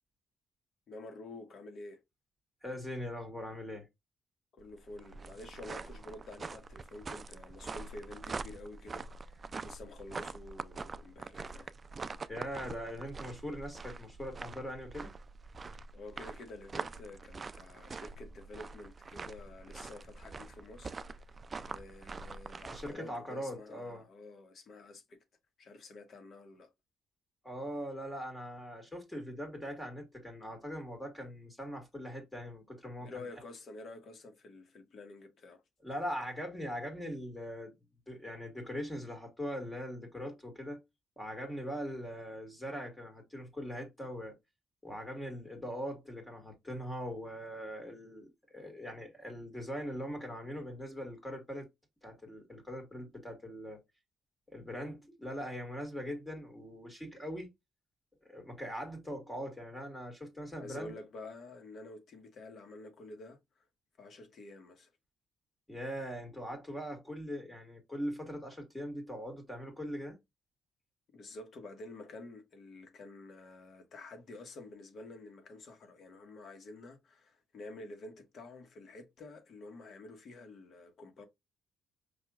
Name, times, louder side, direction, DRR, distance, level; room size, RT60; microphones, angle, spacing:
voice 1, 0.9-2.0 4.5-11.7 15.9-21.0 21.6-25.2 25.6-26.7 33.0-35.6 60.6-63.7 64.0-64.9 71.1-81.3, left 2 dB, 55° left, 1.4 m, -49 dB
voice 2, 2.6-3.9 12.3-15.1 22.7-24.1 27.4-33.2 35.8-37.7 38.1-40.8 41.2-44.3 44.8-51.7 52.0-53.8 54.5-57.5 58.2-60.9 65.7-70.2, equal, 10° left, 1.9 m, -41 dB
sound 1, 4.6-22.9, right 4 dB, 35° right, 0.3 m, -44 dB
5.3 x 3.0 x 2.4 m
cardioid pair, 90°, 0 cm